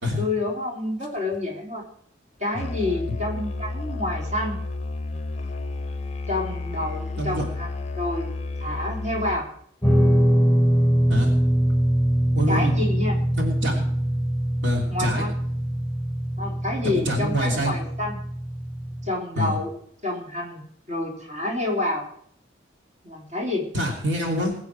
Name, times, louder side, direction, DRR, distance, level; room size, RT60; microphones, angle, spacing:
voice 1, 0.2-1.8 2.4-4.6 6.3-7.7 8.0-8.3 8.6-9.5 12.5-13.2 14.9-15.3 16.4-18.2 19.0-19.7 20.0-20.6 20.9-22.0 23.0-23.7, left 2 dB, 40° right, -2 dB, 3.7 m, -28 dB
Musical instrument, 2.5-9.6, left 3 dB, 35° left, 0.6 m, -31 dB
Guitar, 9.8-19.1, equal, 10° left, 4.9 m, -23 dB
voice 2, 12.3-12.7 13.3-13.8 14.6-15.2 16.8-17.8 19.4-19.5 23.7-24.5, equal, 75° right, -1 dB, 3.0 m, -26 dB
21.0 x 8.6 x 4.7 m, 0.65 s
head